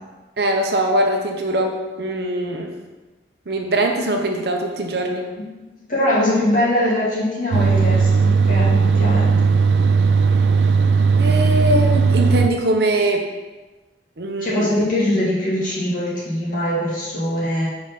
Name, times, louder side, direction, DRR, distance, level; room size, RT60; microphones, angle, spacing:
voice 1, 0.4-2.7 3.5-5.2 11.2-13.2 14.2-14.7, right 1 dB, 60° right, 2 dB, 0.8 m, -21 dB
voice 2, 5.9-9.3 14.4-17.7, left 1 dB, 50° left, -8 dB, 2.1 m, -22 dB
sound 1, 7.5-12.5, right 5 dB, 85° right, 0.4 m, -16 dB
4.8 x 3.8 x 5.8 m, 1.2 s
head